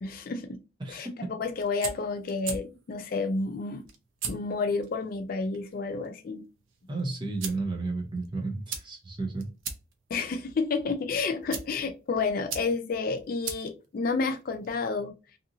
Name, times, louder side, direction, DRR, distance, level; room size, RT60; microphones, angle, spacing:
voice 1, 0.0-0.6 0.9-3.8 4.3-6.4 10.1-15.1, left 4 dB, 45° left, 7 dB, 0.3 m, -30 dB
voice 2, 0.8-1.1 6.9-9.5, right 3 dB, 25° right, 3 dB, 0.6 m, -32 dB
sound 1, 1.4-14.8, right 6 dB, 80° right, 0.6 m, -42 dB
2.7 x 2.6 x 2.6 m, 0.30 s
head